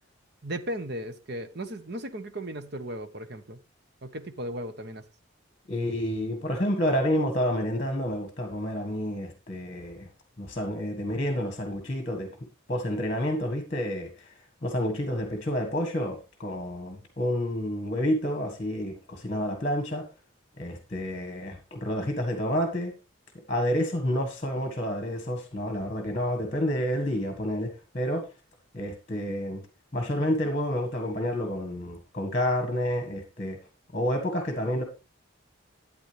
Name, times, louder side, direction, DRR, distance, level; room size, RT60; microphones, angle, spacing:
voice 1, 0.4-3.6 4.0-5.0, right 1 dB, 50° right, 1.1 m, -36 dB
voice 2, 5.7-10.1 10.4-12.3 12.7-14.3 14.6-20.0 20.6-22.9 23.5-28.3 28.7-29.6 29.9-33.6 33.9-34.8, equal, 30° left, 1.6 m, -29 dB
12.0 x 8.7 x 3.4 m
head